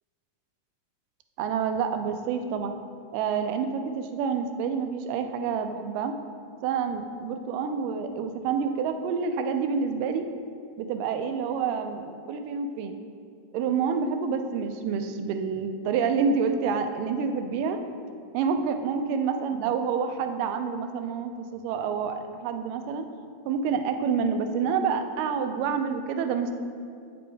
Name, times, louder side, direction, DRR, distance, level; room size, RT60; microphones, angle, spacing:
voice 1, 1.4-2.8 3.1-6.1 6.6-10.3 10.8-13.0 13.5-17.8 18.3-23.1 23.5-26.6, right 6 dB, 90° right, 7 dB, 2.2 m, -28 dB
8.4 x 6.9 x 3.4 m, 2.3 s
omnidirectional pair, 3.7 m